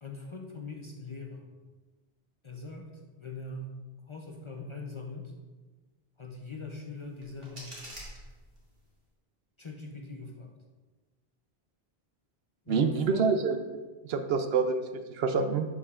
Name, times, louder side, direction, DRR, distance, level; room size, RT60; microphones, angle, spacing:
voice 1, 0.0-1.5 2.4-3.8 4.1-5.3 6.2-8.0 9.6-10.5 12.7-13.3, left 3 dB, 35° left, 1 dB, 0.5 m, -42 dB
sound 1, 7.0-8.9, right 1 dB, 50° right, 1.8 m, -47 dB
voice 2, 12.7-13.6 14.1-14.8 15.1-15.7, right 5 dB, 75° right, 8 dB, 0.8 m, -26 dB
11.0 x 4.8 x 2.4 m, 1.3 s
omnidirectional pair, 1.1 m